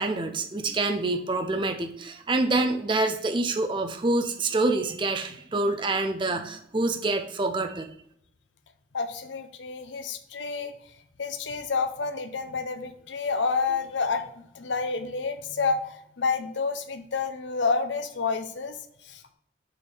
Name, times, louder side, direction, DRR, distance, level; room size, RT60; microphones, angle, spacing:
voice 1, 0.0-7.9, right 2 dB, 25° right, 6 dB, 0.5 m, -26 dB
voice 2, 8.9-10.7 11.2-14.3 14.5-18.8 19.0-19.2, left 4 dB, 75° left, 8 dB, 0.7 m, -29 dB
6.7 x 3.6 x 6.2 m, 0.71 s
head